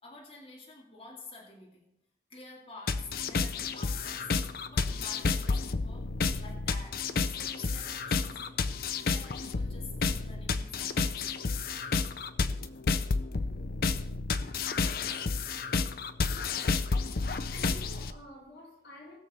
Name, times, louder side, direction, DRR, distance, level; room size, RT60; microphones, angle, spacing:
voice 1, 0.0-1.9 2.3-4.3 4.7-7.0 7.3-11.3 13.4-13.8, left 3 dB, 30° left, 2.1 m, -49 dB
sound 1, 2.9-18.1, left 4 dB, 55° left, 0.5 m, -31 dB
voice 2, 16.7-19.2, equal, 75° left, 2.6 m, -50 dB
19.0 x 6.8 x 4.1 m
head